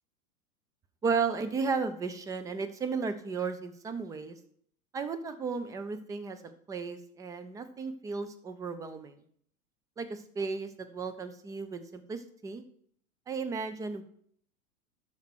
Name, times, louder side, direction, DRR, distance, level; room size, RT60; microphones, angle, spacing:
voice 1, 1.0-4.4 4.9-9.2 10.0-12.6 13.3-14.0, right 5 dB, 10° right, 10 dB, 0.5 m, -34 dB
12.5 x 4.5 x 5.9 m, 0.63 s
figure-of-eight pair, 95°, 45 cm